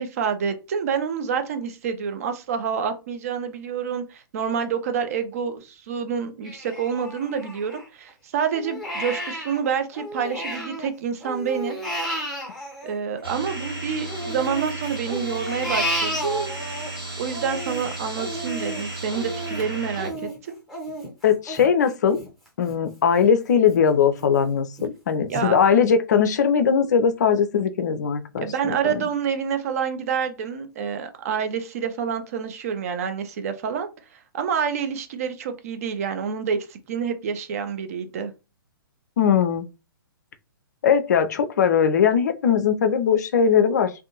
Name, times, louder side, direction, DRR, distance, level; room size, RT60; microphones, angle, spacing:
voice 1, 0.0-11.8 12.8-16.5 17.2-20.6 25.3-25.6 28.4-38.3, right 7 dB, 40° right, 0.5 m, -28 dB
Crying sobbing, 6.4-8.1 8.5-10.9 11.2-13.6 14.1-16.9 17.3-22.8 23.2-23.3 23.7-24.3 24.8-24.9 25.3-25.5, equal, ahead, 0.8 m, -32 dB
sound 1, 13.2-20.1, right 2 dB, 80° right, 1.0 m, -34 dB
voice 2, 21.2-22.2 22.6-29.0 39.2-39.7 40.8-43.9, left 7 dB, 50° left, 0.4 m, -20 dB
2.5 x 2.1 x 2.8 m
figure-of-eight pair, 120°, 12 cm